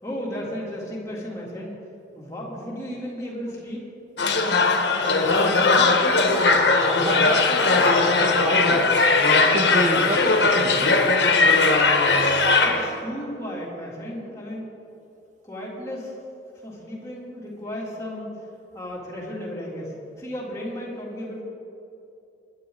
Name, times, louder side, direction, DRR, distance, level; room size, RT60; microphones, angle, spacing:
voice 1, 0.0-1.8 2.1-3.9 4.2-6.0 12.6-14.7 15.4-16.2 16.6-18.3 18.7-21.4, equal, 15° left, -5 dB, 3.3 m, -34 dB
sound 1, 4.2-12.9, left 3 dB, 70° left, 1.5 m, -19 dB
voice 2, 6.8-8.9 9.3-10.9, right 1 dB, 45° right, 3 dB, 1.5 m, -29 dB
22.0 x 11.0 x 4.1 m, 2.8 s
head